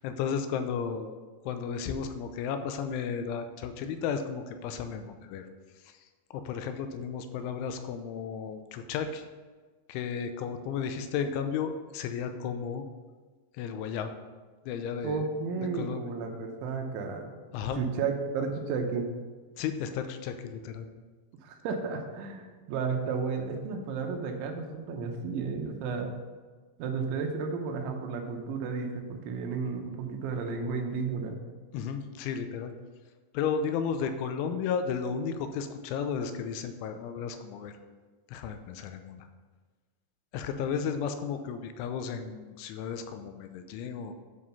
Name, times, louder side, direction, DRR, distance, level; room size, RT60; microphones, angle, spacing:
voice 1, 0.0-1.2 1.5-5.5 5.8-5.9 6.3-9.3 9.9-12.9 13.6-14.1 14.7-15.3 15.6-16.0 17.5-17.8 19.6-20.9 31.7-32.7 33.3-37.7 38.3-39.3 40.3-44.1, left 6 dB, 85° left, 8 dB, 3.1 m, -33 dB
voice 2, 15.0-17.2 17.7-19.1 21.4-26.1 26.8-31.4, right 5 dB, 80° right, 3 dB, 3.2 m, -33 dB
9.9 x 4.7 x 5.6 m, 1.4 s
omnidirectional pair, 5.4 m